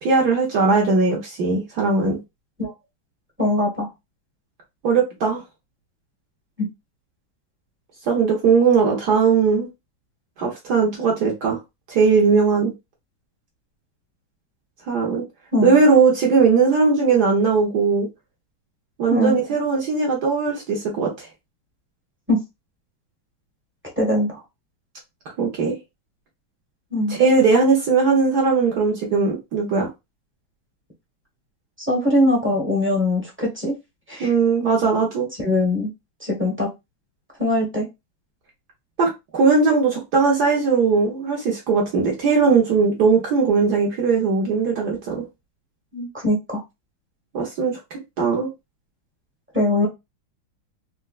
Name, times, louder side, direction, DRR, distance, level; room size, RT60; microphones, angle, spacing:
voice 1, 0.0-2.2 4.8-5.4 8.1-9.7 10.4-11.6 11.9-12.7 14.9-15.2 15.6-18.1 19.0-21.3 25.4-25.8 27.1-29.9 34.2-35.3 39.0-45.2 47.3-48.5, right 4 dB, 60° right, 1.2 m, -19 dB
voice 2, 3.4-3.9 6.6-6.7 15.5-15.8 19.1-19.4 22.3-22.4 24.0-24.4 26.9-27.2 31.8-33.7 34.1-34.3 35.4-35.9 36.2-36.7 37.4-37.9 45.9-46.6 49.5-49.9, left 1 dB, 10° right, 0.6 m, -21 dB
4.3 x 2.1 x 2.3 m
omnidirectional pair, 2.3 m